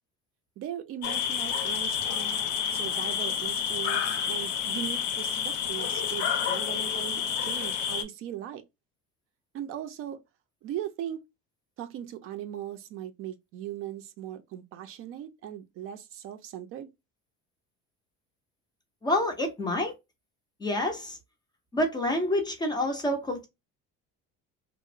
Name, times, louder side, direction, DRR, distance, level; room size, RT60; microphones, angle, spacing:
voice 1, 0.6-2.4 2.7-8.6 9.5-10.2 10.6-11.2 11.8-16.9, right 11 dB, 50° right, 0.4 m, -39 dB
sound 1, 1.0-8.0, left 8 dB, 75° left, 0.6 m, -29 dB
voice 2, 19.0-19.9 20.6-21.2 21.7-23.5, left 1 dB, 15° left, 0.4 m, -28 dB
2.8 x 2.0 x 2.4 m
cardioid pair, 160°, 29 cm